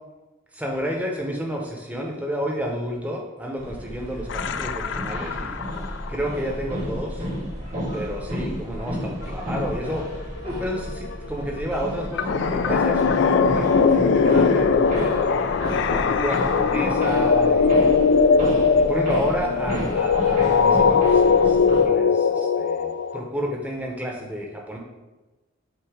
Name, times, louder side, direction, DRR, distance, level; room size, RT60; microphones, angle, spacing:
voice 1, 0.5-5.6 6.1-7.3 7.9-15.4 15.9-17.8 18.7-24.8, equal, 5° right, -1 dB, 0.8 m, -31 dB
sound 1, 3.6-21.8, equal, 35° right, 1.2 m, -32 dB
sound 2, 4.3-6.2 9.2-9.3 9.5-23.2, left 5 dB, 60° left, 0.3 m, -20 dB
7.7 x 2.8 x 5.0 m, 1.1 s
head